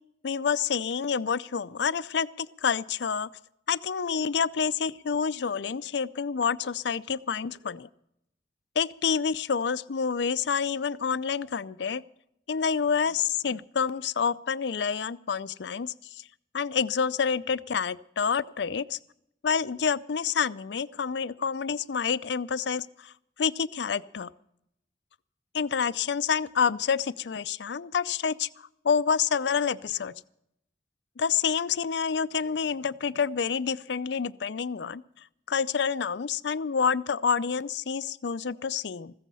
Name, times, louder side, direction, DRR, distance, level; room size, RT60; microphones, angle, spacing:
voice 1, 0.2-3.3 3.7-7.9 8.8-12.0 12.5-15.9 16.5-19.0 19.4-23.1 23.4-24.3 25.5-28.5 28.8-30.1 31.2-35.0 35.5-39.1, left 6 dB, 70° left, 17 dB, 0.5 m, -28 dB
15.0 x 14.5 x 5.5 m, 0.77 s
head